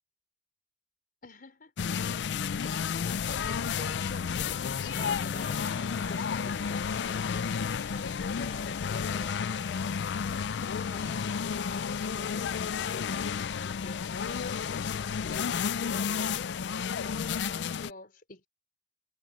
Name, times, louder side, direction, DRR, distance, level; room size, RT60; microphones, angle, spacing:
voice 1, 1.2-2.3 2.6-9.7 10.4-12.7 12.9-18.5, left 2 dB, 55° left, 4.4 m, -48 dB
sound 1, 1.8-17.9, left 6 dB, 70° left, 0.4 m, -31 dB
sound 2, 3.2-12.0, left 3 dB, 15° left, 5.8 m, -59 dB
sound 3, 4.8-12.7, right 1 dB, 10° right, 6.6 m, -53 dB
head